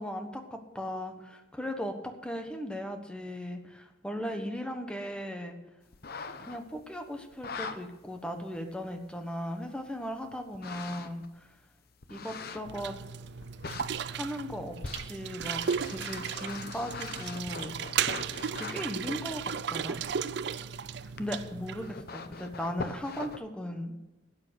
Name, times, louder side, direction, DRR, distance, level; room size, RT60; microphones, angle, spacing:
voice 1, 0.0-5.6 6.4-11.5 12.1-12.9 14.1-17.8 18.5-19.4 19.7-20.0 21.2-24.1, equal, 5° left, 5 dB, 1.2 m, -37 dB
sound 1, 5.9-6.8 7.3-7.8 8.5-8.6 10.5-11.3 12.0-12.8 13.4-13.9 14.8-18.9 21.2-21.3 21.6-23.4, left 4 dB, 55° left, 0.8 m, -41 dB
sound 2, 12.6-21.9, right 7 dB, 60° right, 0.4 m, -35 dB
12.0 x 8.8 x 6.4 m, 1.1 s
head